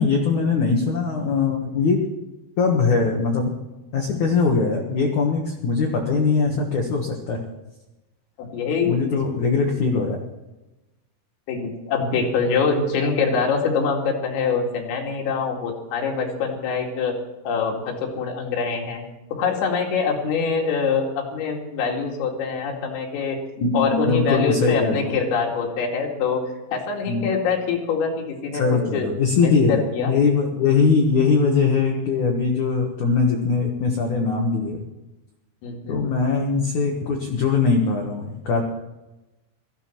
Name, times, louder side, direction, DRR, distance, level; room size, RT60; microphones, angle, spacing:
voice 1, 0.0-2.0 2.6-3.5 3.9-7.4 8.8-10.2 23.6-25.1 27.0-27.3 28.5-29.8 30.1-34.8 35.9-38.6, left 4 dB, 70° left, 1 dB, 1.9 m, -21 dB
voice 2, 8.4-9.2 11.5-17.1 17.4-19.0 19.3-23.4 23.7-26.4 26.7-28.1 28.4-30.1 35.6-36.0, left 5 dB, 85° left, 1 dB, 5.0 m, -24 dB
19.0 x 14.0 x 4.6 m, 1.0 s
omnidirectional pair, 5.8 m